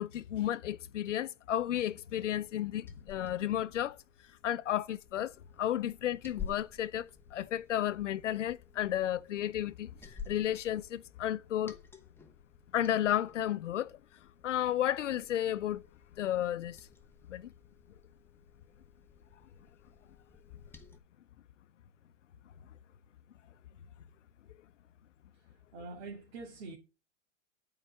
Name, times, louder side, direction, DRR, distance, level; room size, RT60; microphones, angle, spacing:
voice 1, 0.0-4.0 4.4-5.3 5.6-9.9 10.3-11.8 12.7-13.9 14.4-15.8 16.2-16.8 17.3-17.5, left 11 dB, 80° left, 0.7 m, -32 dB
Liquid, 2.4-21.0, left 6 dB, 5° left, 0.9 m, -52 dB
voice 2, 25.4-26.8, right 3 dB, 60° right, 2.1 m, -45 dB
8.8 x 4.8 x 6.8 m
hypercardioid pair, 120°, 36 cm